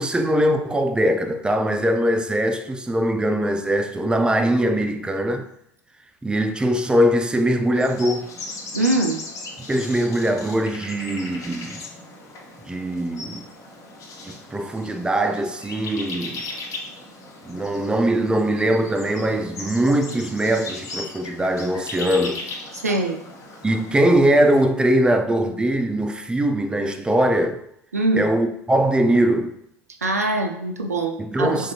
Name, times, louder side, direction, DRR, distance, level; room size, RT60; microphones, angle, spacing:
voice 1, 0.0-5.5 6.2-8.3 9.7-11.8 12.7-13.5 14.2-16.5 17.5-22.4 23.6-27.6 28.2-29.5 31.2-31.7, right 1 dB, 10° right, 0.3 m, -21 dB
sound 1, 7.7-24.7, left 2 dB, 40° left, 0.7 m, -37 dB
voice 2, 8.7-9.2 22.7-23.2 27.9-28.3 30.0-31.6, right 2 dB, 90° right, 0.3 m, -23 dB
3.2 x 2.6 x 2.7 m
figure-of-eight pair, 65°, 8 cm